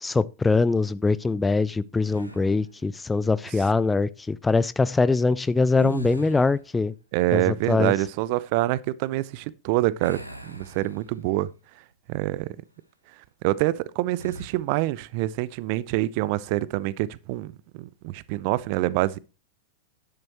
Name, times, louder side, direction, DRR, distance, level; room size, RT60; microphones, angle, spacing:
voice 1, 0.0-6.9 7.3-7.9, left 3 dB, 10° left, 0.5 m, -23 dB
sound 1, 2.1-2.7 5.6-6.7 10.0-11.4 11.9-12.1 14.1-14.6, right 2 dB, 90° right, 1.8 m, -39 dB
voice 2, 7.1-11.5 12.1-12.5 13.4-19.2, right 17 dB, 45° right, 0.7 m, -26 dB
11.0 x 10.5 x 3.0 m
figure-of-eight pair, 90°, 0 cm